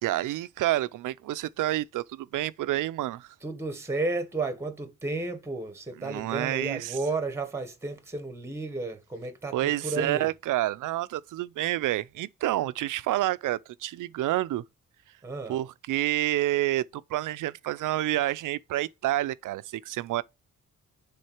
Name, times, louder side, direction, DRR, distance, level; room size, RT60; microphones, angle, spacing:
voice 1, 0.0-3.3 6.0-6.9 9.5-14.6 15.5-20.2, right 15 dB, 85° right, 0.5 m, -29 dB
voice 2, 3.4-10.3 15.2-15.6, right 3 dB, 10° right, 1.0 m, -33 dB
6.4 x 3.9 x 4.4 m
wide cardioid pair, 170°, 30 cm